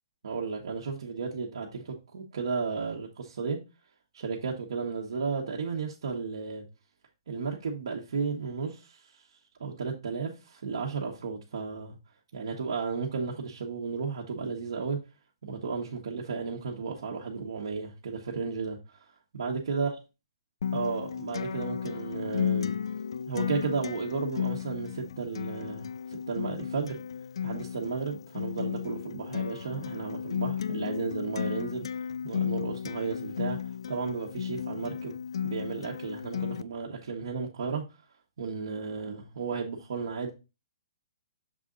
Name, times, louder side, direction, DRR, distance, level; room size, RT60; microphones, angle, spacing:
voice 1, 0.2-3.6 4.1-6.6 7.3-9.2 9.6-12.0 12.3-15.0 15.4-19.0 19.3-19.9 20.7-22.7 23.3-27.0 27.4-33.6 33.9-35.2 35.4-37.8 38.4-40.3, right 5 dB, 70° right, 1.2 m, -34 dB
Acoustic guitar, 20.6-36.6, left 8 dB, 70° left, 0.3 m, -34 dB
6.7 x 3.8 x 3.8 m
hypercardioid pair, 165°, 3 cm